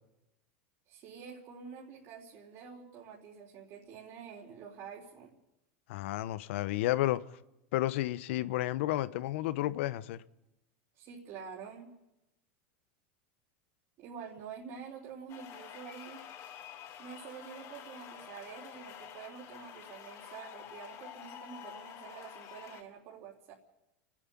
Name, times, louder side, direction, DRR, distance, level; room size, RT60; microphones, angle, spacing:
voice 1, 0.9-5.3 10.9-11.9 14.0-16.3 17.0-23.5, right 6 dB, 50° right, 4.2 m, -47 dB
voice 2, 5.9-7.2 7.7-10.2, left 15 dB, 75° left, 1.1 m, -31 dB
sound 1, 15.3-22.8, left 9 dB, 50° left, 4.3 m, -49 dB
30.0 x 10.0 x 9.8 m
supercardioid pair, 115°, 7 cm